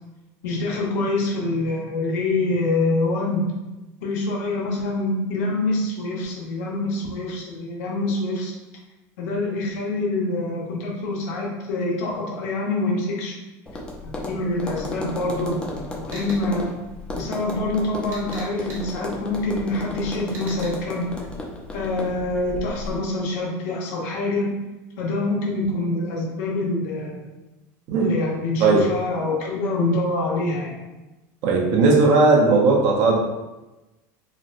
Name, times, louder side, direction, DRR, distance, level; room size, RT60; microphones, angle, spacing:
voice 1, 0.4-3.5 4.0-8.5 9.2-13.3 14.0-16.7 17.2-21.1 21.7-24.5 25.0-27.3 28.0-30.7, left 2 dB, 75° left, -2 dB, 0.9 m, -25 dB
Tap, 13.7-23.0, left 2 dB, 10° left, 0.4 m, -34 dB
sound 1, 16.1-16.4 18.1-18.8 20.3-20.7, right 2 dB, 30° right, 1.0 m, -39 dB
voice 2, 31.4-33.2, right 3 dB, 50° right, -1 dB, 0.7 m, -17 dB
4.1 x 2.1 x 2.5 m, 1.1 s
supercardioid pair, 150°, 9 cm